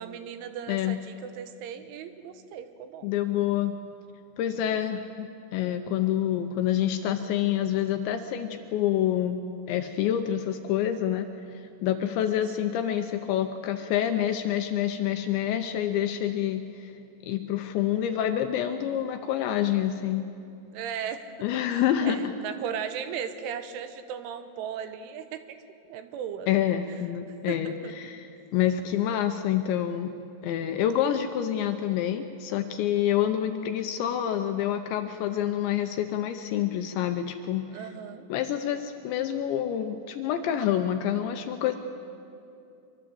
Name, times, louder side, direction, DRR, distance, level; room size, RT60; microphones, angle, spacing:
voice 1, 0.0-3.1 4.6-5.0 12.6-12.9 20.7-25.6 25.9-26.5 27.5-27.9 37.7-38.3, right 8 dB, 75° right, 9 dB, 3.3 m, -37 dB
voice 2, 0.7-1.0 3.0-3.7 4.4-9.4 9.7-16.9 17.2-20.3 21.4-22.3 26.5-30.1 30.4-37.8 38.3-41.8, left 10 dB, 80° left, 7 dB, 2.7 m, -27 dB
24.5 x 24.0 x 7.8 m, 2.6 s
omnidirectional pair, 5.9 m